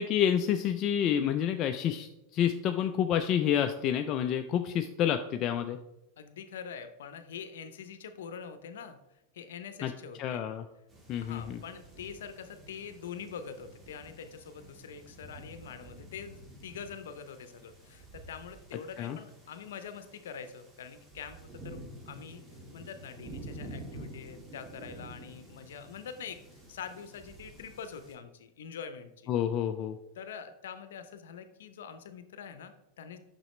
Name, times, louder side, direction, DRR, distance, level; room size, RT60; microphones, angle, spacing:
voice 1, 0.0-5.8 9.8-9.9 10.2-10.6 11.1-11.6 19.0-19.2 29.3-30.0, left 9 dB, 40° left, 7 dB, 0.4 m, -29 dB
voice 2, 6.2-9.0 9.3-10.4 11.2-22.4 22.7-29.3 30.1-33.2, left 7 dB, 85° left, 10 dB, 0.7 m, -44 dB
sound 1, 10.9-28.1, right 1 dB, 20° right, 1.7 m, -49 dB
6.2 x 5.9 x 3.2 m, 0.88 s
supercardioid pair, 125°, 0 cm